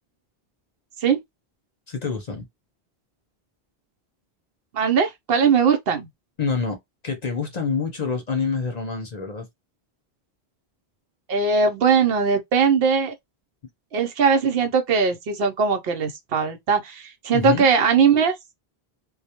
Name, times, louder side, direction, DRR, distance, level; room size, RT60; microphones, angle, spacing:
voice 1, 1.9-2.4 6.4-6.8 7.0-9.5 17.3-17.7, left 4 dB, 50° left, 0.6 m, -26 dB
voice 2, 4.7-6.1 11.3-13.1 13.9-18.4, right 5 dB, 70° right, 0.8 m, -20 dB
2.2 x 2.1 x 2.8 m
omnidirectional pair, 1.0 m